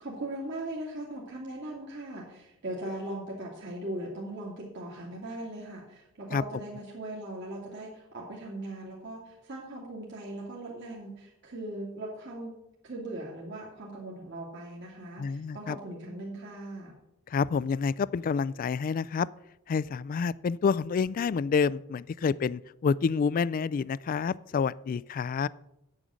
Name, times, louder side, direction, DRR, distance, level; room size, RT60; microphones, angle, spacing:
voice 1, 0.0-12.5 12.8-16.9, right 1 dB, 60° right, -3 dB, 2.3 m, -39 dB
voice 2, 15.2-15.8 17.3-19.3 19.7-25.5, left 5 dB, 40° left, 21 dB, 0.3 m, -28 dB
8.9 x 8.5 x 6.3 m, 0.84 s
head